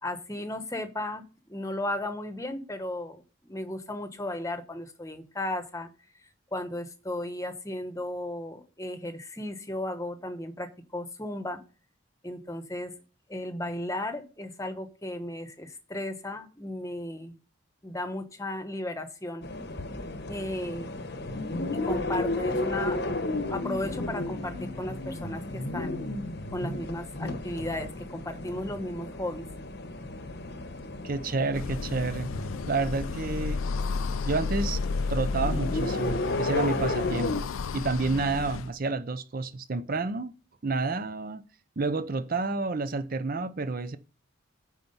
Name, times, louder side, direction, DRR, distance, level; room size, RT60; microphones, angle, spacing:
voice 1, 0.0-1.2 1.5-5.9 6.5-11.6 12.2-12.9 13.3-17.3 17.8-19.4 20.3-21.0 21.7-23.2 23.5-26.0 26.5-29.4, left 1 dB, 15° left, 1.0 m, -35 dB
sound 1, 19.4-37.4, left 2 dB, 50° left, 0.9 m, -33 dB
voice 2, 31.0-32.3 32.7-33.6 34.2-34.8 35.1-37.3 37.7-40.3 40.6-41.4 41.8-44.0, right 3 dB, 45° right, 0.6 m, -29 dB
sound 2, 31.5-38.7, left 4 dB, 75° left, 0.4 m, -32 dB
9.2 x 4.5 x 5.5 m
head